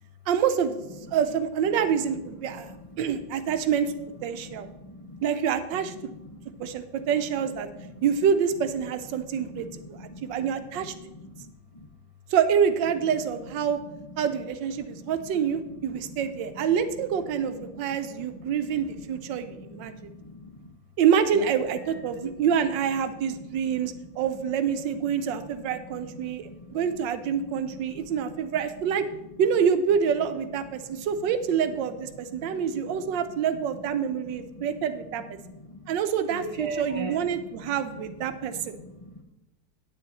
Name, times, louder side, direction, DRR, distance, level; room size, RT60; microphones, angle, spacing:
voice 1, 0.3-0.8 1.1-4.7 5.2-5.9 6.6-7.7 8.0-10.9 12.3-13.8 14.2-20.1 21.0-29.1 29.4-35.4 35.9-38.8, right 7 dB, 90° right, 10 dB, 1.4 m, -27 dB
voice 2, 2.9-3.2 4.3-5.2 6.1-6.7 7.8-7.9 9.5-10.5 10.8-11.9 14.8-15.4 16.6-16.7 17.6-18.0 19.1-20.7 21.3-21.5 21.9-22.3 23.6-23.8 25.7-27.5 27.7-27.8 28.1-28.3 32.3-33.0 34.5-34.7 35.4-35.8 36.3-37.8 38.4-39.2, right 1 dB, 50° left, 0 dB, 0.4 m, -41 dB
9.3 x 8.8 x 4.1 m, 0.95 s
omnidirectional pair, 2.0 m